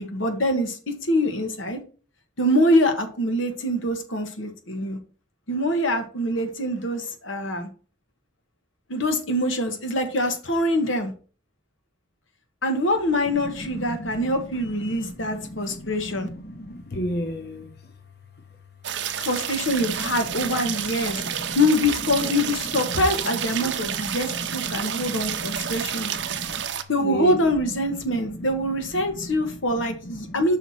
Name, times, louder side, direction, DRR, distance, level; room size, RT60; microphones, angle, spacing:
voice 1, 0.0-1.8 2.4-5.0 5.5-7.7 8.9-11.1 12.6-16.3 19.2-26.1 26.9-30.6, left 1 dB, 85° left, 1.4 m, -24 dB
voice 2, 13.3-17.7 19.8-20.7 21.0-21.6 22.9-26.6 27.0-27.4 27.7-27.8 28.1-28.2 28.9-29.5 29.7-30.3, equal, 55° left, 0.9 m, -35 dB
sound 1, 18.8-26.8, right 9 dB, 65° right, 0.6 m, -30 dB
5.7 x 4.3 x 5.9 m
head